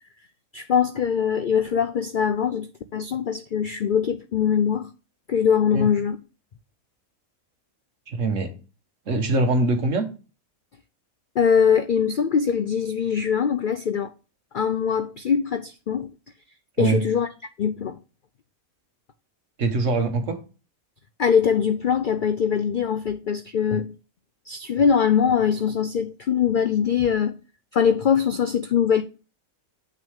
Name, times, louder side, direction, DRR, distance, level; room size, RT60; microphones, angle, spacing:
voice 1, 0.5-4.9 5.3-6.2 11.4-14.1 14.5-16.1 16.8-17.3 17.6-18.0 21.2-23.9 24.5-27.4 27.7-29.0, left 7 dB, 70° left, 0.5 m, -22 dB
voice 2, 8.1-8.5 9.1-10.1 16.8-17.0 19.6-20.4, right 3 dB, 60° right, 1.6 m, -23 dB
8.2 x 6.0 x 3.5 m
omnidirectional pair, 1.5 m